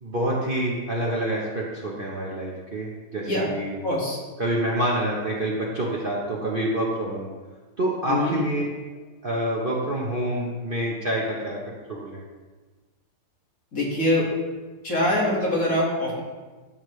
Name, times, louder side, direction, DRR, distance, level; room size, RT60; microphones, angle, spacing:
voice 1, 0.0-3.8 4.4-7.3 7.8-8.6 9.2-11.6 11.9-12.2, right 1 dB, 35° right, -4 dB, 1.1 m, -27 dB
voice 2, 3.8-4.2 8.1-8.3 13.7-14.3 14.8-16.2, left 1 dB, 50° left, -4 dB, 2.5 m, -23 dB
13.0 x 7.3 x 3.2 m, 1.3 s
omnidirectional pair, 2.0 m